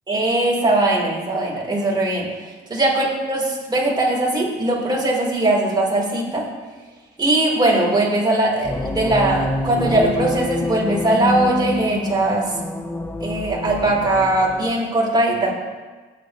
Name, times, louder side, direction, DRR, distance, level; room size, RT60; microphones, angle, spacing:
voice 1, 0.1-2.3 2.7-6.5 7.2-12.5 13.2-15.5, right 2 dB, 20° right, -3 dB, 4.1 m, -20 dB
sound 1, 8.6-14.8, left 2 dB, 10° left, 0.8 m, -27 dB
17.0 x 9.4 x 3.2 m, 1.3 s
cardioid pair, 90°, 20 cm